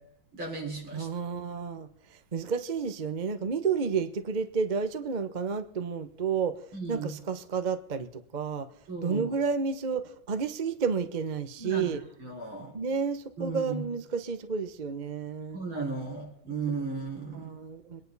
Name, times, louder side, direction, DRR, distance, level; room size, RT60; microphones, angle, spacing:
voice 1, 0.3-1.1 6.7-7.1 8.9-9.3 11.6-12.7 13.4-13.8 15.5-17.5, right 4 dB, 80° right, -1 dB, 5.8 m, -35 dB
voice 2, 0.9-8.7 9.0-12.0 12.7-15.6 17.3-18.0, right 5 dB, 35° right, 9 dB, 0.8 m, -31 dB
24.0 x 10.5 x 4.1 m, 0.68 s
omnidirectional pair, 2.2 m